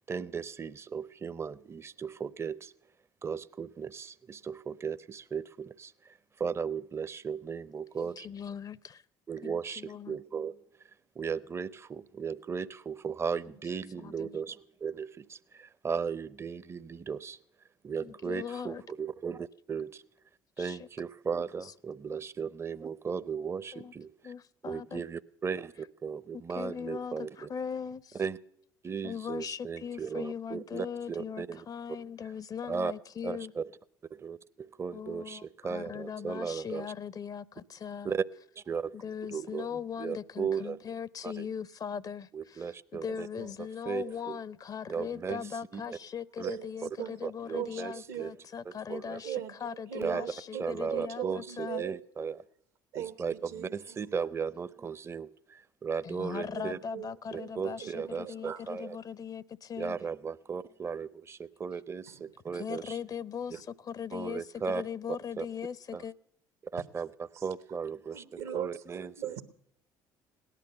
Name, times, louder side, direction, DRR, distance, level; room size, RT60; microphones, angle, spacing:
voice 1, 0.1-2.7 3.2-8.3 9.3-10.6 11.2-17.4 17.8-20.0 20.6-24.3 24.6-27.5 28.1-28.4 28.8-31.7 32.7-32.9 33.2-33.7 34.1-36.9 38.0-38.2 38.6-39.0 39.3-40.8 41.2-41.5 42.3-43.3 43.9-44.4 44.9-45.8 46.4-46.5 46.8-46.9 47.2-48.3 48.7-49.2 50.0-50.2 50.6-52.4 52.9-56.8 57.3-59.0 59.8-63.0 64.1-64.8 65.4-65.5 65.9-66.0 66.7-67.1 67.4-68.2 68.5-69.4, right 6 dB, 25° right, 0.6 m, -36 dB
voice 2, 8.0-9.0 9.4-10.2 14.0-14.3 18.0-18.8 20.6-20.9 23.7-23.9 24.2-25.0 26.3-28.2 29.0-33.5 34.9-38.1 38.9-49.4 49.6-51.8 56.0-60.0 62.5-66.1, left 7 dB, 40° left, 0.5 m, -39 dB
voice 3, 43.1-43.5 44.0-44.1 45.9-46.0 46.4-47.2 47.5-48.3 49.2-52.0 52.9-53.7 56.5-56.6 56.9-58.6 62.1-62.2 67.3-67.4 68.1-69.4, right 11 dB, 75° right, 1.2 m, -40 dB
17.5 x 11.0 x 6.7 m
hypercardioid pair, 65°, 10 cm